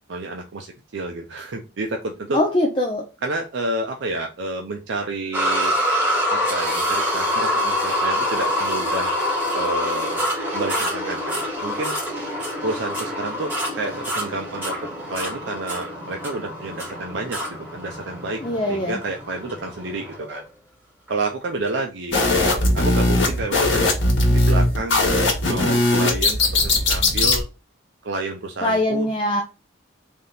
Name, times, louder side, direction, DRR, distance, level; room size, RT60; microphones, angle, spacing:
voice 1, 0.1-2.4 3.2-5.7 6.3-9.1 9.5-10.3 10.5-12.0 12.6-14.8 15.1-18.4 18.7-20.4 21.1-23.9 24.3-25.1 25.4-27.4 28.0-29.1, right 2 dB, 70° right, 0.5 m, -30 dB
voice 2, 2.3-3.0 18.4-19.0 28.6-29.4, left 1 dB, 25° left, 0.5 m, -22 dB
sound 1, 5.3-20.4 21.1-21.2 21.7-21.8, equal, 10° right, 2.1 m, -26 dB
sound 2, 22.1-27.4, left 2 dB, 70° left, 1.5 m, -19 dB
3.6 x 2.8 x 3.9 m
head